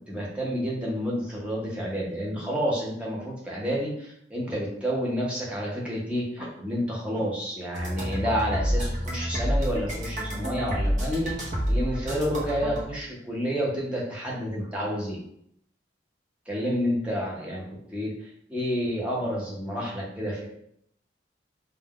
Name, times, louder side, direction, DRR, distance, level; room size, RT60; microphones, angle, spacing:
voice 1, 0.1-11.4 11.7-15.2 16.5-17.6 17.9-18.1 18.5-20.4, equal, 5° right, -5 dB, 0.7 m, -29 dB
sound 1, 7.7-12.8, equal, 45° right, 0.7 m, -28 dB
2.5 x 2.2 x 3.5 m, 0.70 s
head